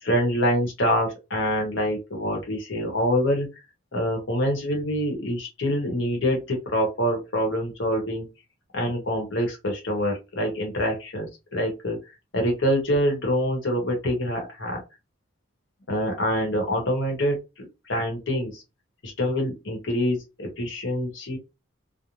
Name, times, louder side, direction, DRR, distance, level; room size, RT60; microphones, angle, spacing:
voice 1, 0.0-3.5 3.9-8.3 8.7-14.8 15.9-18.6 19.0-21.4, equal, 75° left, 1 dB, 1.0 m, -26 dB
2.5 x 2.0 x 3.0 m, 0.26 s
head